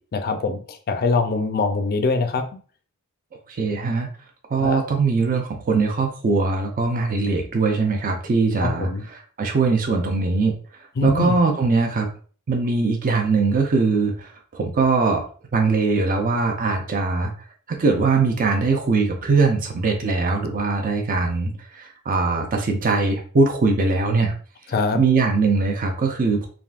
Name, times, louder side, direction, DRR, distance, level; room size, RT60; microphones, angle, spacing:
voice 1, 0.1-2.4 4.6-4.8 8.6-9.0 11.0-11.3 24.7-25.0, left 3 dB, 45° left, 7 dB, 0.4 m, -23 dB
voice 2, 3.5-4.1 4.5-10.5 11.0-12.1 12.5-15.2 15.5-17.3 17.7-24.3 24.9-26.5, right 4 dB, 40° right, 2 dB, 0.5 m, -21 dB
3.5 x 2.5 x 2.4 m, 0.42 s
head